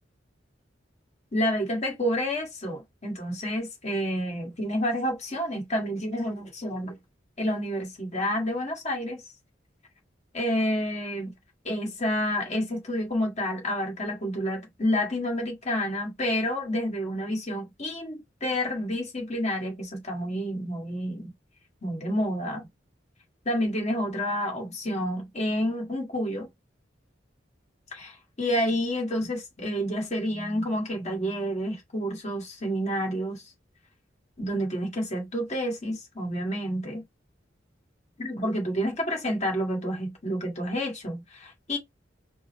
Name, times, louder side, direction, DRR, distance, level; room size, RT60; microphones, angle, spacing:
voice 1, 1.3-7.0 7.4-9.2 10.3-11.3 11.6-21.3 21.8-22.7 23.5-26.5 27.9-33.4 34.4-37.0 38.2-41.8, equal, 40° left, 2.0 m, -29 dB
5.3 x 2.4 x 3.1 m
head